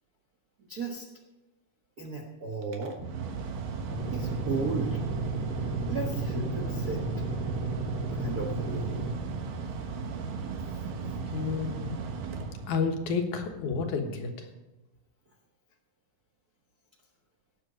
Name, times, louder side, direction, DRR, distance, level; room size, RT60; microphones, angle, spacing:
voice 1, 0.7-1.1 2.0-3.0 4.1-5.0 5.8-7.1 8.1-9.0 10.6-11.2, right 3 dB, 55° right, 1 dB, 1.0 m, -35 dB
Mechanical fan, 2.6-13.2, right 5 dB, 85° right, 3.0 m, -36 dB
sound 1, 3.9-9.1, right 2 dB, 40° right, 3.2 m, -34 dB
voice 2, 11.3-12.0 12.7-14.5, left 5 dB, 70° left, 4 dB, 2.8 m, -30 dB
18.0 x 7.9 x 5.0 m, 1.0 s
omnidirectional pair, 3.7 m